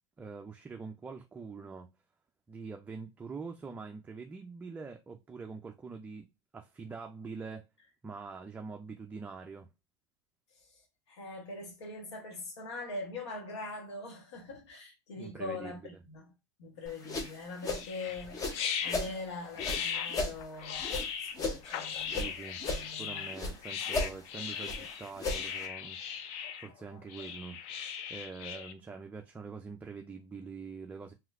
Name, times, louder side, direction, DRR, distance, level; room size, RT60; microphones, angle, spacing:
voice 1, 0.2-1.9 2.5-6.3 6.5-7.7 8.0-9.7 15.2-15.9 22.1-22.6 23.0-31.1, right 4 dB, 10° right, 0.4 m, -44 dB
voice 2, 11.1-16.3 16.6-20.8 21.2-22.3 22.6-23.3, left 2 dB, 85° left, 1.2 m, -42 dB
sound 1, 16.9-19.1 19.5-22.3 22.6-23.6 23.9-25.7, left 3 dB, 25° left, 0.8 m, -36 dB
sound 2, 17.7-28.7, left 8 dB, 45° left, 0.5 m, -38 dB
3.1 x 2.9 x 2.4 m
hypercardioid pair, 120°, 14 cm